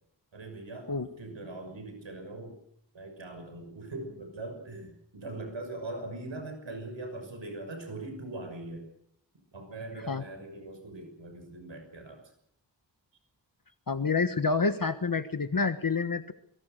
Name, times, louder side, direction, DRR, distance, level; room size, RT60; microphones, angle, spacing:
voice 1, 0.3-2.6 2.9-8.9 9.5-12.3, right 2 dB, 90° right, 5 dB, 6.3 m, -41 dB
voice 2, 13.9-16.3, left 4 dB, 50° left, 9 dB, 1.4 m, -28 dB
24.0 x 23.0 x 6.7 m, 0.72 s
wide cardioid pair, 60°, 44 cm